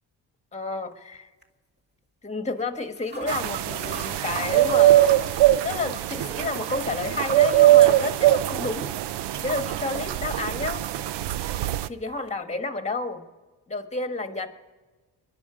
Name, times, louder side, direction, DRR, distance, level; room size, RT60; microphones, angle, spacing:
voice 1, 0.5-1.3 2.2-5.1 5.6-8.9 9.4-10.8 11.9-13.2 13.7-14.6, left 3 dB, 15° left, 7 dB, 1.5 m, -30 dB
sound 1, 0.9-1.2 1.4-1.5 2.6-2.7 3.0-12.3, right 1 dB, 25° right, 2.2 m, -45 dB
sound 2, 3.3-11.9, right 14 dB, 85° right, 0.6 m, -21 dB
25.0 x 11.0 x 5.0 m, 1.3 s
cardioid pair, 85°, 40 cm